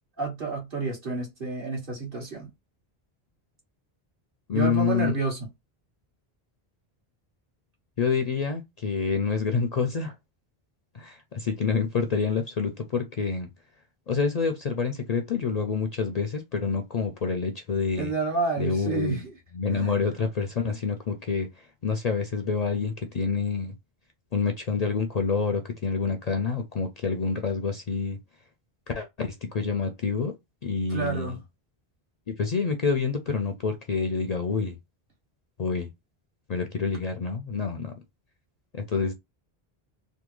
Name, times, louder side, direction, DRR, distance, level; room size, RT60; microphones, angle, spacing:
voice 1, 0.2-2.5 4.5-5.5 18.0-19.4 19.7-20.1 30.9-31.4, right 4 dB, 55° right, 1.7 m, -30 dB
voice 2, 4.5-5.1 8.0-10.1 10.9-13.5 14.1-18.1 18.6-19.2 19.5-23.7 24.3-28.2 28.9-30.3 30.6-31.4 32.3-34.8 35.6-35.9 36.5-37.9 38.7-39.1, left 5 dB, 50° left, 0.5 m, -27 dB
3.5 x 2.2 x 3.1 m
omnidirectional pair, 1.0 m